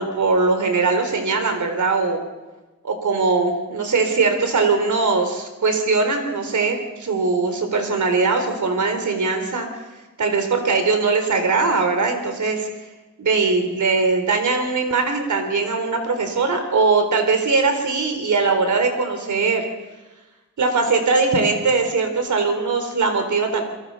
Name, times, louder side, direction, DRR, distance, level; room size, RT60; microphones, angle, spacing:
voice 1, 0.0-2.2 2.8-9.7 10.2-12.7 13.2-19.6 20.6-23.6, right 4 dB, 75° right, 6 dB, 4.2 m, -20 dB
29.0 x 23.0 x 5.7 m, 1.2 s
wide cardioid pair, 130°, 30 cm